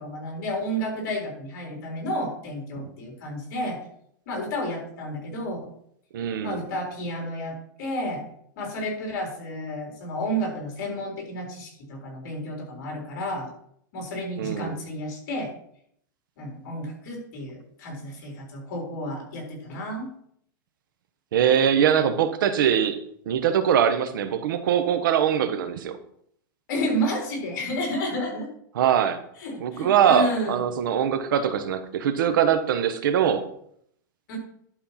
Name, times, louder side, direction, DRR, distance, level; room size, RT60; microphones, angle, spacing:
voice 1, 0.0-3.8 4.3-5.6 6.4-8.2 8.6-13.5 13.9-15.5 16.4-20.1 26.7-28.5 29.4-30.6 34.3-34.4, equal, 50° left, 1 dB, 3.8 m, -31 dB
voice 2, 6.1-6.6 14.4-14.7 21.3-23.0 23.3-26.0 28.7-29.2 29.6-33.4, right 8 dB, 70° right, 10 dB, 1.1 m, -22 dB
11.0 x 4.3 x 5.7 m, 0.68 s
supercardioid pair, 165°, 11 cm